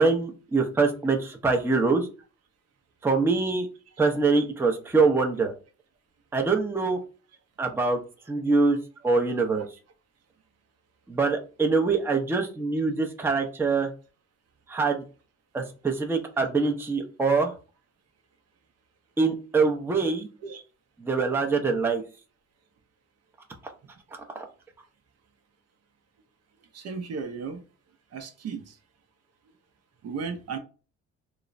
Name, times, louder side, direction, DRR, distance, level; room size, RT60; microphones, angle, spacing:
voice 1, 0.0-2.1 3.0-3.7 4.0-5.5 6.3-7.0 7.6-8.0 8.3-8.8 9.0-9.6 11.1-13.9 14.7-15.0 15.5-17.5 19.2-20.3 21.0-22.0 24.3-24.4, right 4 dB, 10° right, 2 dB, 0.5 m, -24 dB
voice 2, 26.7-27.6 28.1-28.8 30.0-30.6, right 5 dB, 55° right, 7 dB, 0.6 m, -35 dB
3.0 x 2.0 x 2.4 m, 0.34 s
cardioid pair, 90°, 30 cm